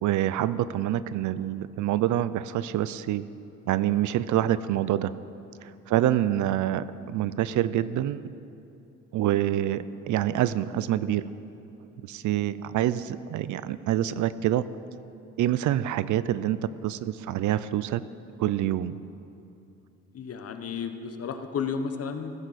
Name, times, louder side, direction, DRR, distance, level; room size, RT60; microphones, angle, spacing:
voice 1, 0.0-3.3 3.7-5.1 5.6-8.3 9.1-11.2 12.1-14.6 15.4-18.0 18.4-19.0, right 12 dB, 75° right, 16 dB, 0.5 m, -26 dB
voice 2, 20.1-22.3, left 6 dB, 50° left, 7 dB, 1.1 m, -32 dB
16.0 x 13.0 x 4.2 m, 2.8 s
cardioid pair, 90°, 30 cm